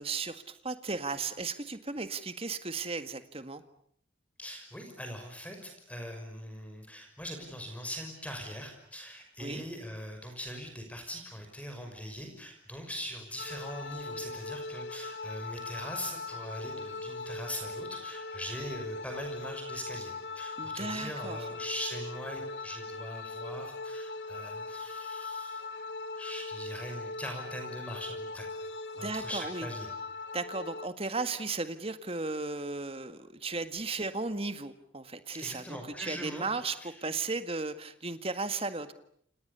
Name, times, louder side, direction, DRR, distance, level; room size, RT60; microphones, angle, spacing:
voice 1, 0.0-3.6 9.4-9.6 20.6-21.4 29.0-29.7 30.3-36.8 37.0-38.9, right 3 dB, 30° right, 10 dB, 1.8 m, -35 dB
voice 2, 4.4-25.9 26.2-28.5 29.0-29.9 35.3-36.5 36.8-37.0, equal, 5° left, 4 dB, 5.9 m, -41 dB
sound 1, 13.4-30.9, left 3 dB, 60° left, 1.4 m, -40 dB
29.5 x 28.0 x 6.9 m, 0.68 s
head